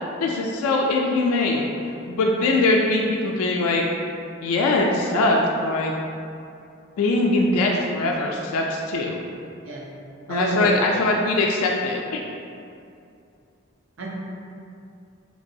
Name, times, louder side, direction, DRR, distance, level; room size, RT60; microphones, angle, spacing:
voice 1, 0.2-1.7 2.1-3.8 4.4-5.9 7.0-9.2 10.3-12.2, left 2 dB, 90° left, 0 dB, 0.3 m, -22 dB
voice 2, 10.3-10.9 14.0-14.1, right 1 dB, 70° right, -3 dB, 0.6 m, -27 dB
3.2 x 2.9 x 2.6 m, 2.5 s
head